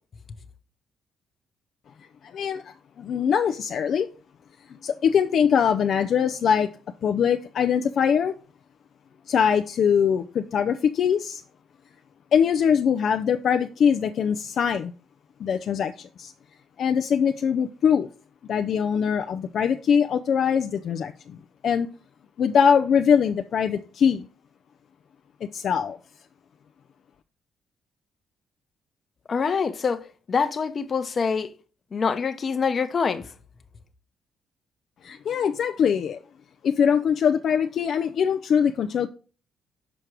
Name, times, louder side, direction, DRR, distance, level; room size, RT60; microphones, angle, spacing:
voice 1, 2.3-4.1 4.8-6.7 7.0-8.3 9.3-11.4 12.3-14.9 15.4-16.3 16.8-18.1 18.5-21.4 21.6-21.9 22.4-24.3 25.5-26.0 35.0-36.2 36.6-39.1, left 7 dB, 60° left, 0.5 m, -22 dB
voice 2, 29.3-31.5 31.9-33.3, left 5 dB, 45° left, 0.9 m, -25 dB
6.2 x 5.0 x 4.5 m
cardioid pair, 90°, 0 cm